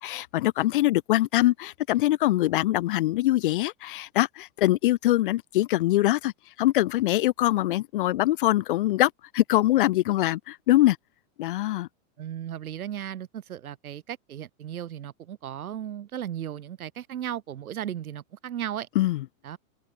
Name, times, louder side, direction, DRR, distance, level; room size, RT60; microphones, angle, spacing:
voice 1, 0.0-6.3 6.6-11.0 11.4-11.9 18.9-19.2, left 16 dB, 40° left, 1.1 m, -23 dB
voice 2, 12.2-18.9 19.4-19.6, right 10 dB, 90° right, 7.6 m, -35 dB
supercardioid pair, 180°, 42 cm